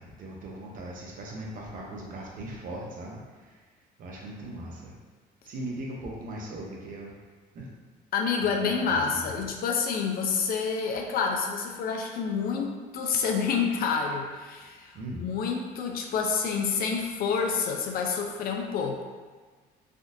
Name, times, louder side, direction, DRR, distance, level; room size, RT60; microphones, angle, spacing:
voice 1, 0.0-3.6 4.0-4.9 5.4-7.1 7.5-7.7 8.4-9.2 14.9-15.2, right 1 dB, 55° right, -2 dB, 0.7 m, -39 dB
voice 2, 8.1-19.0, left 5 dB, 60° left, 2 dB, 0.4 m, -28 dB
3.6 x 2.3 x 2.6 m, 1.4 s
cardioid pair, 110°, 17 cm